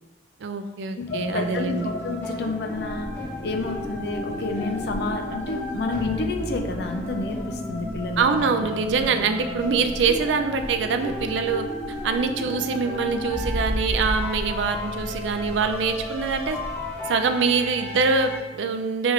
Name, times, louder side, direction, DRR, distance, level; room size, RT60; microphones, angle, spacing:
voice 1, 0.4-1.9 8.2-11.6 12.0-16.6 17.1-19.1, right 5 dB, 80° right, 7 dB, 0.4 m, -24 dB
voice 2, 1.0-3.1 3.4-8.4, left 3 dB, 60° left, 5 dB, 0.4 m, -30 dB
sound 1, 1.1-18.4, left 1 dB, 10° left, 0.7 m, -33 dB
Wind, 2.7-16.9, equal, 35° right, 1.1 m, -39 dB
3.4 x 3.2 x 3.5 m, 1.2 s
head